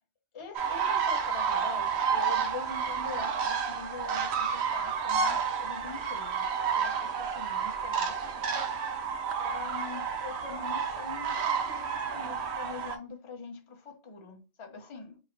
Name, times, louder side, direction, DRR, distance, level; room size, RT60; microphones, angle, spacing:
voice 1, 0.3-8.2 9.4-15.1, left 5 dB, 30° left, 0.7 m, -43 dB
sound 1, 0.5-13.0, right 6 dB, 60° right, 0.8 m, -30 dB
2.9 x 2.8 x 4.0 m
omnidirectional pair, 1.4 m